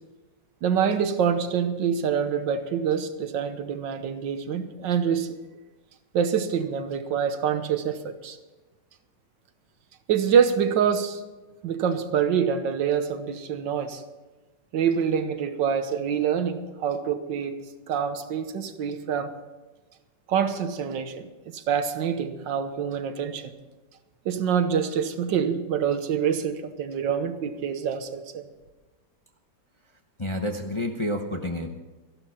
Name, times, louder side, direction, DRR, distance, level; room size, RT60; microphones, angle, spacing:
voice 1, 0.6-5.3 6.1-8.4 10.1-11.2 11.6-14.0 14.7-19.3 20.3-23.5 24.2-28.4, right 7 dB, 85° right, 9 dB, 1.7 m, -26 dB
voice 2, 30.2-31.8, left 1 dB, 25° left, 3 dB, 0.7 m, -29 dB
14.5 x 11.5 x 5.7 m, 1.2 s
omnidirectional pair, 1.9 m